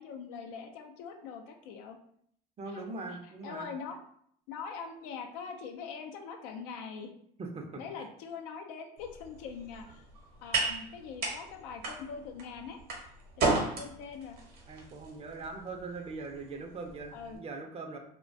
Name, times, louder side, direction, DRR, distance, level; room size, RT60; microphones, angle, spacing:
voice 1, 0.0-2.0 2.7-2.8 3.1-4.0 4.5-7.1 7.8-10.1 10.4-12.8 13.4-14.4 17.1-17.4, left 6 dB, 85° left, 4 dB, 0.4 m, -43 dB
voice 2, 2.6-3.7 7.4-7.8 14.7-18.0, right 3 dB, 35° right, 3 dB, 0.5 m, -41 dB
sound 1, 9.0-17.4, right 3 dB, 60° right, 0.8 m, -36 dB
2.2 x 2.1 x 2.6 m, 0.67 s
supercardioid pair, 90°, 18 cm